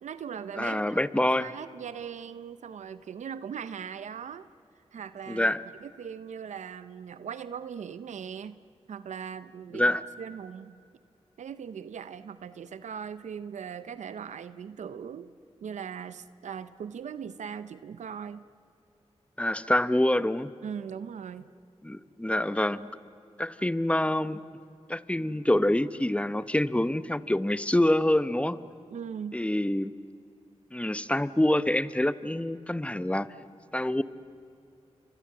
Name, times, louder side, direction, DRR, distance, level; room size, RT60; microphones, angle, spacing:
voice 1, 0.0-0.9 1.4-4.5 4.9-5.5 5.8-8.6 8.9-10.8 11.4-15.3 15.6-18.4 20.6-21.5 28.9-29.4, right 7 dB, 90° right, 13 dB, 0.7 m, -39 dB
voice 2, 0.6-1.5 5.3-5.6 9.7-10.0 19.4-20.5 21.8-23.0 23.4-24.4 24.9-28.6 29.3-29.9 30.7-33.3 33.7-34.0, left 1 dB, 10° left, 14 dB, 1.0 m, -26 dB
29.5 x 25.0 x 7.6 m, 2.5 s
cardioid pair, 45°, 12 cm